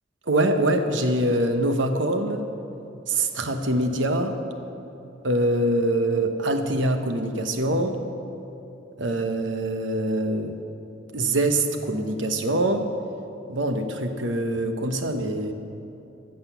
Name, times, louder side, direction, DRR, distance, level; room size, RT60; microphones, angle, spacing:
voice 1, 0.3-2.4 3.1-4.4 5.2-8.0 9.0-10.6 11.1-12.9 13.5-15.5, right 1 dB, 70° right, 7 dB, 0.9 m, -24 dB
14.5 x 6.7 x 6.9 m, 3.0 s
head